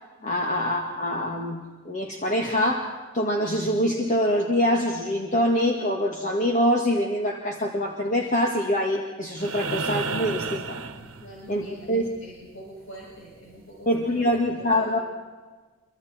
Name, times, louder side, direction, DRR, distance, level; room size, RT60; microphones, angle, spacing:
voice 1, 0.2-10.8 11.5-12.1 13.9-15.0, equal, 35° left, 0 dB, 2.0 m, -25 dB
sound 1, 9.4-11.7 13.5-13.6, right 4 dB, 80° right, 1.5 m, -31 dB
voice 2, 10.4-15.0, equal, 75° left, -5 dB, 6.9 m, -46 dB
27.5 x 25.0 x 4.5 m, 1.4 s
head